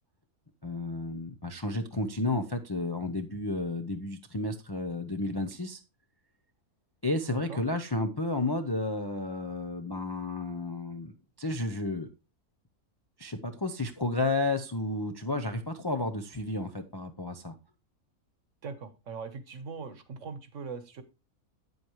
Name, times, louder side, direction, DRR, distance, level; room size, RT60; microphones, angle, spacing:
voice 1, 0.6-5.8 7.0-12.1 13.2-17.6, left 2 dB, 25° left, 5 dB, 0.5 m, -32 dB
voice 2, 18.6-21.0, right 5 dB, 55° right, 11 dB, 1.4 m, -40 dB
9.0 x 8.0 x 3.1 m, 0.29 s
omnidirectional pair, 1.6 m